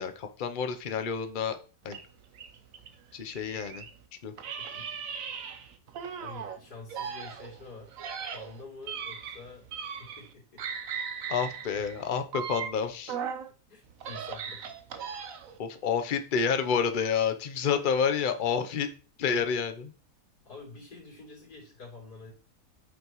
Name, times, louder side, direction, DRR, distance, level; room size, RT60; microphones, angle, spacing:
voice 1, 0.0-1.6 1.8-2.0 3.1-3.8 4.2-4.3 11.3-13.2 15.6-18.9 19.2-19.9, left 6 dB, 45° left, 8 dB, 0.7 m, -29 dB
sound 1, 1.9-4.0 4.4-6.6 6.9-10.3 10.6-13.5 13.9-15.6, right 7 dB, 60° right, 1.1 m, -38 dB
voice 2, 4.6-5.0 5.4-5.7 6.2-7.9 8.3-10.6 13.7-14.6 20.5-22.3, left 3 dB, 75° left, -4 dB, 3.7 m, -47 dB
8.5 x 5.7 x 3.1 m, 0.37 s
omnidirectional pair, 1.7 m